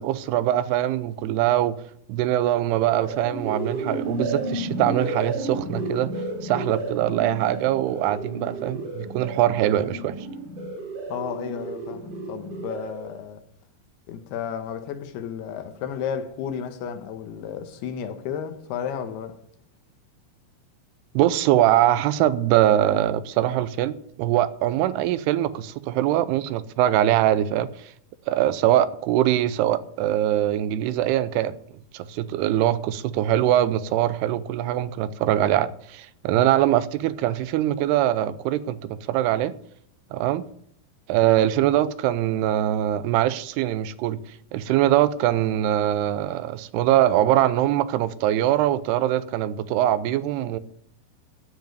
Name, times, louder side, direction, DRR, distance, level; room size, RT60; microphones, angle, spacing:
voice 1, 0.0-1.8 2.1-6.1 6.4-10.2 21.1-27.7 28.3-31.5 31.9-39.5 40.1-40.4 41.1-44.2 44.5-50.6, right 13 dB, 85° right, 2.7 m, -22 dB
sound 1, 2.7-13.2, right 2 dB, 70° right, 6.7 m, -32 dB
voice 2, 11.1-13.4 14.1-19.4, left 8 dB, 85° left, 3.1 m, -33 dB
14.5 x 5.1 x 9.3 m
omnidirectional pair, 4.5 m